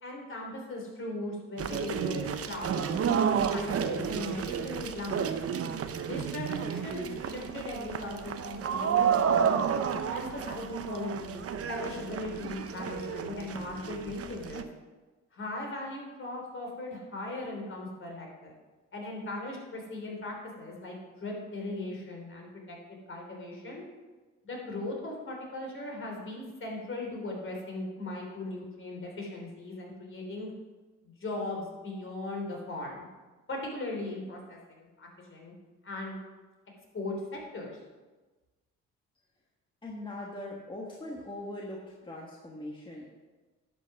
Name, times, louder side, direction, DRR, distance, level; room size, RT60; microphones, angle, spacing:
voice 1, 0.0-3.0 3.5-5.3 6.0-9.8 10.1-11.4 11.7-14.6 15.3-18.5 18.9-22.8 23.1-23.8 24.4-30.5 31.0-33.1 33.5-35.5 35.8-36.2 36.9-37.8, left 2 dB, 40° left, -1 dB, 3.4 m, -38 dB
sound 1, 1.6-14.6, right 7 dB, 50° right, 0.8 m, -31 dB
voice 2, 39.8-43.1, left 1 dB, 15° left, -2 dB, 1.6 m, -41 dB
11.0 x 6.1 x 5.9 m, 1.3 s
cardioid pair, 90°, 30 cm